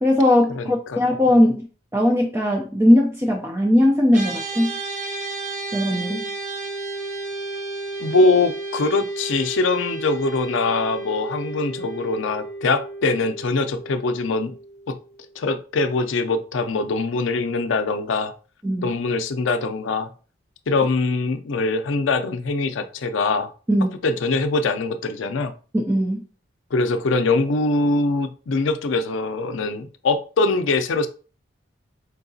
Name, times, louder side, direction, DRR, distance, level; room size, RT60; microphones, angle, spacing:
voice 1, 0.0-1.7 1.9-4.7 5.7-6.3 18.6-18.9 23.7-23.9 25.7-26.2, left 1 dB, 15° right, 1 dB, 0.4 m, -19 dB
voice 2, 0.5-1.0 8.0-14.5 14.9-15.0 15.4-18.3 18.8-20.1 20.7-23.5 24.0-25.5 26.7-31.1, left 3 dB, 75° left, 9 dB, 0.4 m, -22 dB
sound 1, 4.1-15.6, right 2 dB, 40° right, 0.7 m, -33 dB
4.5 x 2.8 x 2.7 m, 0.38 s
head